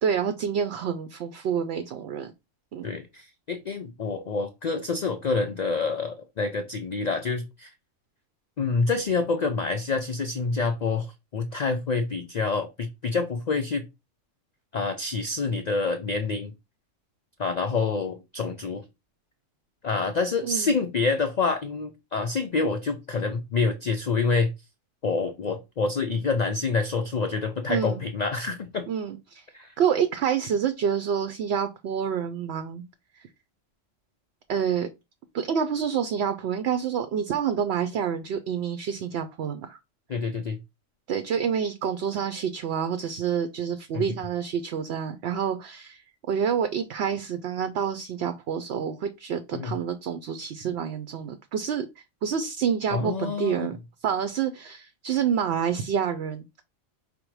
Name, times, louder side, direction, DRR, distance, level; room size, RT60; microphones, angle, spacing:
voice 1, 0.0-2.3 2.7-2.9 20.4-20.7 27.7-28.0 28.9-29.4 29.8-32.8 34.5-34.9 35.3-39.8 41.1-46.0 46.3-51.9 52.2-53.8 54.0-56.6, right 7 dB, 65° right, 0.7 m, -28 dB
voice 2, 2.8-7.7 8.6-13.9 14.7-16.5 17.4-18.8 19.8-24.5 25.0-28.9 29.5-29.7 40.1-40.6 43.9-44.2 49.5-49.8 52.9-53.8, left 4 dB, 85° left, 0.3 m, -27 dB
5.1 x 2.1 x 4.5 m
omnidirectional pair, 1.3 m